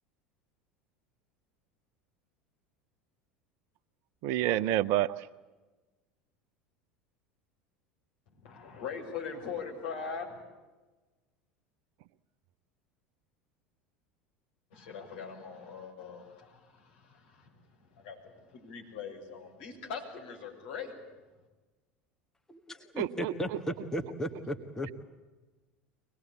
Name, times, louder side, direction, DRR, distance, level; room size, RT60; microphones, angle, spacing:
voice 1, 4.2-5.3 23.0-23.3, right 13 dB, 50° right, 15 dB, 0.8 m, -28 dB
voice 2, 8.4-10.4 14.7-17.5 18.0-20.9, left 6 dB, 60° left, 0 dB, 6.7 m, -41 dB
voice 3, 22.5-24.9, equal, 10° left, 5 dB, 1.9 m, -36 dB
25.0 x 20.5 x 8.5 m, 1.2 s
figure-of-eight pair, 75°, 6 cm